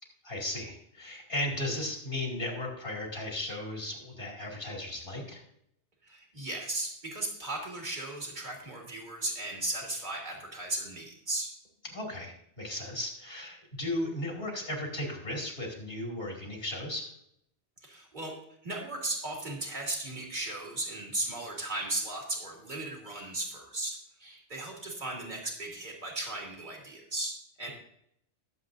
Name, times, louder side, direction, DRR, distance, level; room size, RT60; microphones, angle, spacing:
voice 1, 0.2-5.4 11.9-17.1, left 1 dB, 55° left, -1 dB, 2.7 m, -36 dB
voice 2, 6.0-11.5 17.8-18.3 18.6-27.7, right 2 dB, 40° right, -1 dB, 2.5 m, -36 dB
20.0 x 7.6 x 2.6 m, 0.73 s
omnidirectional pair, 1.2 m